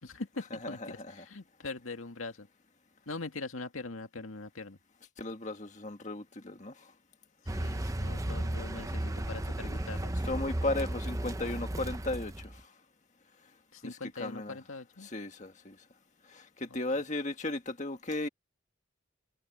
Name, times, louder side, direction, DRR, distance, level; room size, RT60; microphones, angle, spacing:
voice 1, 0.0-2.5 3.1-4.8 7.5-10.1 13.7-15.1 16.7-17.0, left 3 dB, 85° left, 2.1 m, -42 dB
voice 2, 0.6-1.1 5.2-6.9 7.5-7.6 10.2-12.7 13.8-14.6 15.0-15.8 16.3-18.3, left 2 dB, 35° left, 1.7 m, -36 dB
Car, 7.5-12.6, right 1 dB, 15° right, 0.7 m, -34 dB
head